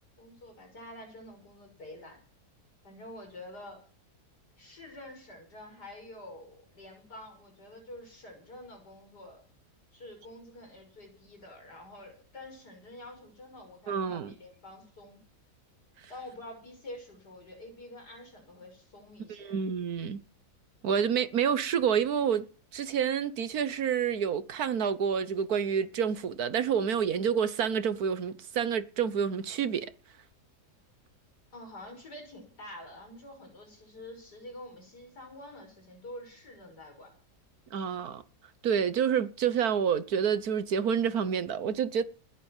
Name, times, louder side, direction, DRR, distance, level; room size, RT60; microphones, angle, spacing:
voice 1, 0.2-2.2 2.8-3.8 4.6-9.4 9.9-15.2 16.1-19.6 31.5-37.1, left 1 dB, 75° left, 6.8 m, -47 dB
voice 2, 13.9-14.3 19.4-20.2 20.8-22.5 22.7-29.9 37.7-38.2 38.6-42.0, right 7 dB, 65° right, 1.5 m, -28 dB
20.5 x 8.3 x 7.3 m
omnidirectional pair, 1.7 m